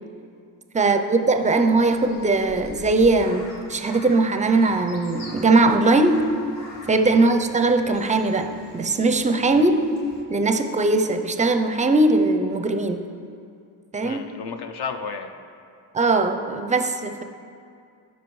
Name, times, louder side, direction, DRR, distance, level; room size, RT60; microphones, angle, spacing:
voice 1, 0.7-6.3 6.9-9.8 10.3-13.1 13.9-14.2 15.9-17.2, right 2 dB, 20° right, 8 dB, 0.4 m, -20 dB
Crow, 1.3-10.2, left 2 dB, 80° left, 1.3 m, -44 dB
voice 2, 14.0-15.3, left 5 dB, 60° left, 7 dB, 0.7 m, -33 dB
12.0 x 5.0 x 3.1 m, 2.4 s
cardioid pair, 75°, 43 cm